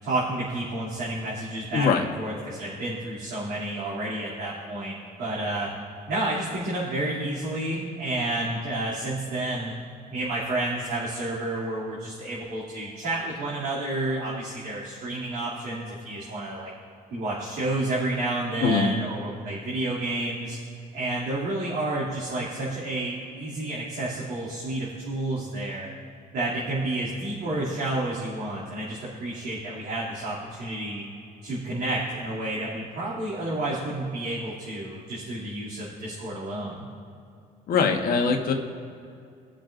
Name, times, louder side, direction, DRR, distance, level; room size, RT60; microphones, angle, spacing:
voice 1, 0.0-5.7 6.1-9.7 10.1-16.7 17.1-20.6 20.9-25.9 26.3-31.0 31.4-36.9, right 2 dB, 70° right, -9 dB, 2.7 m, -30 dB
voice 2, 1.7-2.0 18.6-18.9 37.7-38.5, left 5 dB, 60° left, 3 dB, 1.2 m, -22 dB
19.5 x 7.6 x 2.5 m, 2.4 s
cardioid pair, 110°, 17 cm